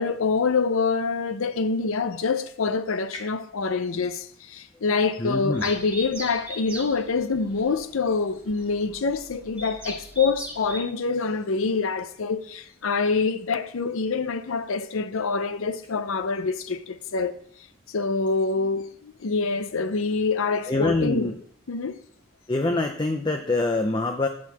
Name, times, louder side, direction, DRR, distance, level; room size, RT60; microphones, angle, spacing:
voice 1, 0.0-17.3 17.9-21.3 21.7-22.0, left 4 dB, 75° left, 0.6 m, -26 dB
voice 2, 5.2-5.7 20.7-21.4 22.5-24.3, left 2 dB, 20° left, 0.4 m, -25 dB
sound 1, 5.5-10.8, right 1 dB, 10° right, 1.4 m, -39 dB
8.5 x 4.5 x 5.8 m
head